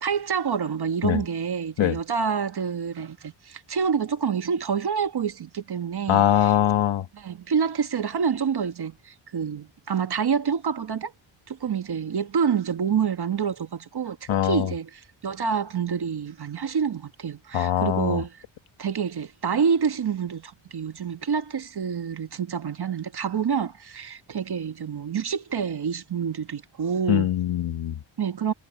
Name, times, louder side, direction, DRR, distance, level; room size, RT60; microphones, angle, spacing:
voice 1, 0.0-6.5 7.1-11.1 11.5-18.4 18.8-27.3 28.2-28.5, right 6 dB, 55° right, 1.6 m, -27 dB
voice 2, 6.1-7.0 14.3-14.7 17.5-18.2 27.1-28.0, left 11 dB, 75° left, 1.5 m, -22 dB
cardioid pair, 105°, 47 cm